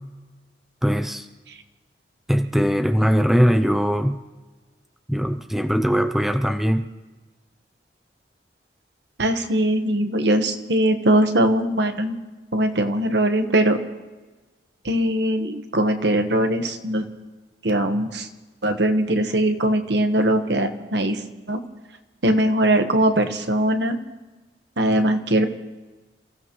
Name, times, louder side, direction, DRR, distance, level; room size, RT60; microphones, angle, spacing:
voice 1, 0.8-1.3 2.3-4.2 5.1-6.9, equal, ahead, 7 dB, 0.5 m, -20 dB
voice 2, 9.2-12.2 12.5-13.8 14.8-17.1 17.6-18.3 18.6-21.2 21.5-21.6 22.2-24.0 24.8-25.5, right 1 dB, 70° right, 6 dB, 1.4 m, -21 dB
29.0 x 15.5 x 3.2 m, 1.2 s
head